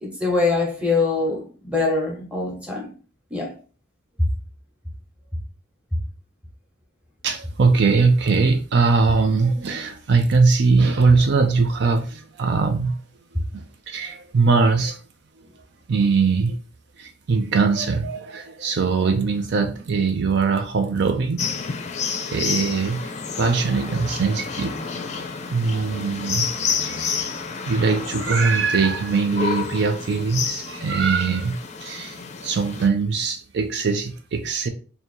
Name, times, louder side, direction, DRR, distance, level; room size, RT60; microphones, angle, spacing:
voice 1, 0.0-2.9 3.3-3.5, left 3 dB, 5° right, 1.0 m, -23 dB
voice 2, 7.2-13.0 13.5-15.0 15.9-16.6 17.0-21.4 22.3-24.8 25.5-26.5 26.8-27.3 27.6-34.7, right 4 dB, 65° right, 0.5 m, -21 dB
sound 1, 21.4-32.9, left 6 dB, 40° left, 0.5 m, -30 dB
2.8 x 2.7 x 4.4 m
head